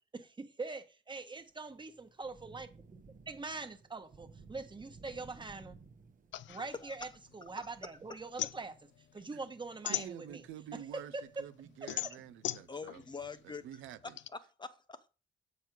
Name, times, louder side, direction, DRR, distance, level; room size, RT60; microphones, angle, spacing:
voice 1, 0.1-3.0 3.3-5.7 6.5-10.4 10.7-11.4 11.8-12.1, right 3 dB, 25° right, 1.3 m, -43 dB
Thunder / Rain, 1.4-13.8, right 4 dB, 40° right, 1.1 m, -60 dB
sound 1, 6.3-7.8 8.1-10.7 11.1-14.3, left 13 dB, 70° left, 0.5 m, -40 dB
voice 2, 9.9-13.0 13.4-14.2, right 11 dB, 85° right, 0.5 m, -48 dB
voice 3, 12.7-13.6 14.0-14.1 14.6-15.1, left 5 dB, 20° left, 0.8 m, -44 dB
7.5 x 5.4 x 4.6 m
cardioid pair, 90°, 20 cm